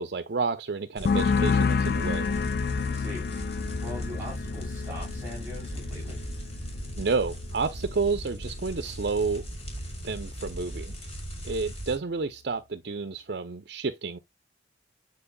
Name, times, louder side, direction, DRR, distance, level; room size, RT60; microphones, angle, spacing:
voice 1, 0.0-2.3 7.0-9.4 10.0-10.9 11.4-14.2, right 4 dB, 60° right, 0.6 m, -30 dB
sound 1, 1.0-8.5 8.8-9.3, left 5 dB, 60° left, 0.3 m, -30 dB
sound 2, 1.0-12.0, right 1 dB, 35° left, 4.6 m, -38 dB
voice 2, 2.8-3.2 3.8-6.2, equal, 10° right, 3.9 m, -41 dB
9.7 x 4.5 x 2.3 m
head